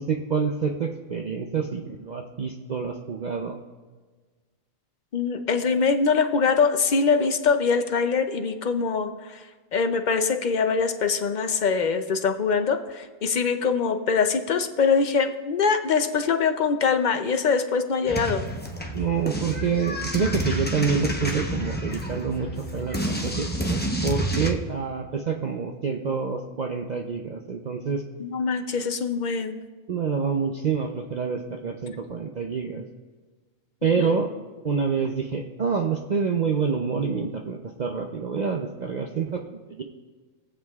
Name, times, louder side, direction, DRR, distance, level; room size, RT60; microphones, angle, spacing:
voice 1, 0.0-3.6 18.9-28.0 29.9-32.8 33.8-34.3 34.6-39.8, right 5 dB, 55° right, 2 dB, 0.5 m, -27 dB
voice 2, 5.1-9.4 9.7-18.5 28.2-29.5 33.8-34.2, left 5 dB, 55° left, 7 dB, 0.5 m, -23 dB
sound 1, 18.1-24.5, right 1 dB, 10° left, 0.6 m, -29 dB
20.5 x 7.5 x 2.4 m, 1.4 s
omnidirectional pair, 1.4 m